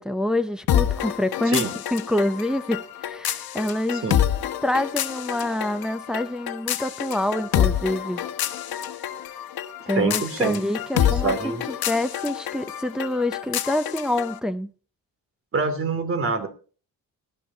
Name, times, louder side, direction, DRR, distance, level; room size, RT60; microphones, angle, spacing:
voice 1, 0.0-1.6 1.9-4.0 4.6-8.2 9.9-11.3 11.9-14.7, left 1 dB, ahead, 0.6 m, -26 dB
sound 1, 0.7-14.4, left 10 dB, 70° left, 1.2 m, -27 dB
voice 2, 3.9-4.2 9.9-10.6 10.9-11.6 15.5-16.5, right 4 dB, 35° right, 2.7 m, -26 dB
18.5 x 12.5 x 2.8 m
cardioid pair, 140°, 37 cm